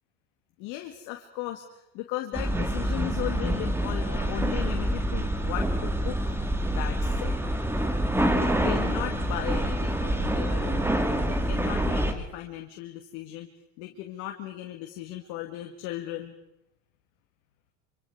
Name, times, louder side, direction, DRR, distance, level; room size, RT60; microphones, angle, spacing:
voice 1, 0.6-6.2 6.7-7.3 8.3-10.9 11.3-13.5 13.8-16.3, left 14 dB, 70° left, 3 dB, 2.3 m, -36 dB
sound 1, 2.3-12.1, right 1 dB, 5° right, 2.3 m, -26 dB
26.5 x 26.0 x 5.0 m, 0.87 s
supercardioid pair, 110°, 34 cm